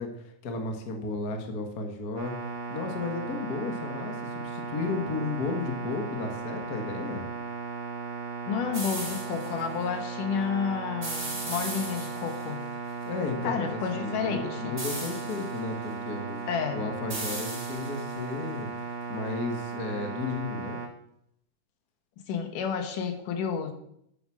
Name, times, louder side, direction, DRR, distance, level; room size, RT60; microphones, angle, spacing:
voice 1, 0.0-7.2 13.0-16.4 16.7-18.7 19.1-20.8, left 3 dB, 35° left, 4 dB, 1.7 m, -34 dB
sound 1, 2.2-20.9, right 5 dB, 80° right, 3.4 m, -36 dB
voice 2, 8.5-12.7 13.4-14.8 16.5-16.8 22.3-23.7, left 6 dB, 75° left, 7 dB, 2.7 m, -31 dB
sound 2, 8.7-9.5 11.0-12.4 14.8-15.6 17.1-18.1, right 2 dB, 25° right, 3.3 m, -37 dB
11.0 x 9.3 x 6.4 m, 0.75 s
omnidirectional pair, 3.8 m